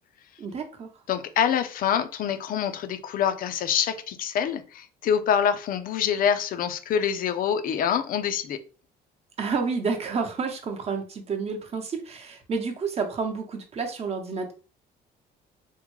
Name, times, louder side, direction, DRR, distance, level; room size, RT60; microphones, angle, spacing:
voice 1, 0.4-0.9 9.4-14.5, right 5 dB, 40° right, 4 dB, 0.8 m, -30 dB
voice 2, 1.1-8.6, left 8 dB, 55° left, 10 dB, 0.5 m, -25 dB
3.6 x 2.1 x 3.1 m, 0.36 s
cardioid pair, 110°, 17 cm